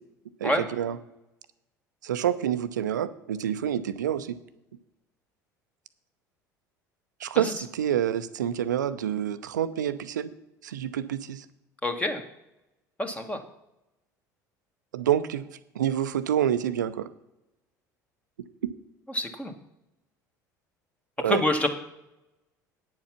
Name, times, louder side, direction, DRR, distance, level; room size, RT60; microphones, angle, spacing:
voice 1, 0.4-1.0 2.0-4.4 7.2-10.3 10.6-11.4 14.9-15.4 15.8-17.1 21.2-21.4, right 10 dB, 75° right, 13 dB, 0.6 m, -27 dB
voice 2, 11.8-12.2 13.0-13.4 19.1-19.5 21.3-21.7, left 1 dB, 15° left, 5 dB, 1.5 m, -27 dB
9.3 x 7.5 x 5.9 m, 0.92 s
figure-of-eight pair, 65°, 10 cm